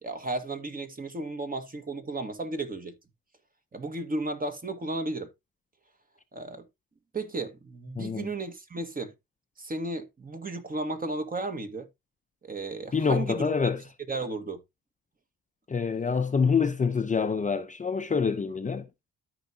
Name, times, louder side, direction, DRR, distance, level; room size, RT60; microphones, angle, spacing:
voice 1, 0.0-3.0 3.7-5.3 6.3-6.7 7.1-9.1 9.6-11.9 12.4-13.5 14.1-14.6, right 2 dB, 30° right, 1.6 m, -34 dB
voice 2, 8.0-8.3 12.9-13.8 15.7-18.9, left 5 dB, 25° left, 0.6 m, -26 dB
13.5 x 4.8 x 2.7 m
cardioid pair, 90°, 30 cm